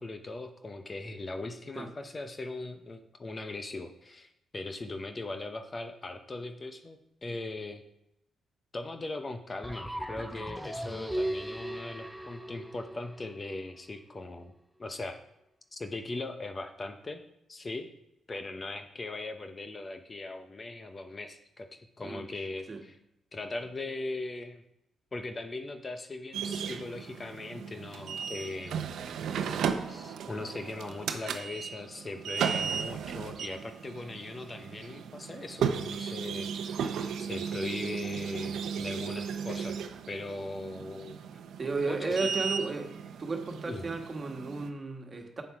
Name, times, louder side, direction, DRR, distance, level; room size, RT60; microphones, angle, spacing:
voice 1, 0.0-7.8 8.7-14.5 14.8-15.2 15.7-17.2 17.5-17.9 18.3-23.0 23.3-24.6 25.1-29.1 29.9-36.5 37.2-39.8 40.1-41.2 41.8-42.4 43.7-43.9, left 2 dB, 30° left, 7 dB, 0.8 m, -39 dB
sound 1, 9.6-13.6, right 1 dB, ahead, 0.7 m, -37 dB
sound 2, 26.3-44.7, right 7 dB, 80° right, 0.7 m, -35 dB
voice 2, 41.6-42.9 43.2-45.4, right 3 dB, 35° right, 3 dB, 1.6 m, -33 dB
7.8 x 7.0 x 4.8 m, 0.83 s
cardioid pair, 80°, 0 cm